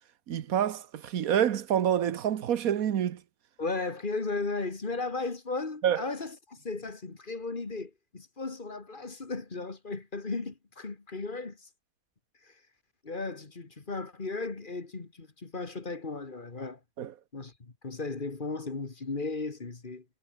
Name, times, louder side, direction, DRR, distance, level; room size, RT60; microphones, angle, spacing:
voice 1, 0.3-3.2 5.8-6.0 17.0-17.1, right 10 dB, 85° right, 1.4 m, -27 dB
voice 2, 3.6-11.7 12.4-12.5 13.0-16.8 17.3-20.0, left 3 dB, 35° left, 1.9 m, -36 dB
omnidirectional pair, 1.5 m